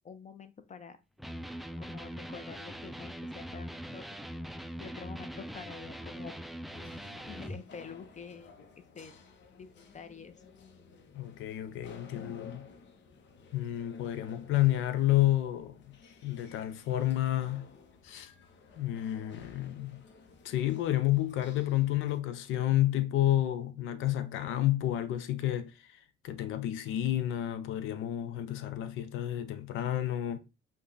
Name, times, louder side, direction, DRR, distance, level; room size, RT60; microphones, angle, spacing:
voice 1, 0.0-1.0 1.8-4.0 4.5-6.3 7.2-9.1 9.6-10.4, left 6 dB, 35° left, 0.8 m, -47 dB
Electric guitar, 1.2-7.6, equal, ahead, 0.4 m, -42 dB
sound 1, 6.7-22.2, left 4 dB, 65° left, 1.0 m, -55 dB
voice 2, 11.1-12.7 13.5-15.9 16.2-17.7 18.0-18.3 18.8-20.0 20.4-25.7 26.2-30.4, left 14 dB, 85° left, 0.6 m, -30 dB
5.4 x 2.4 x 3.9 m
cardioid pair, 90°, 20 cm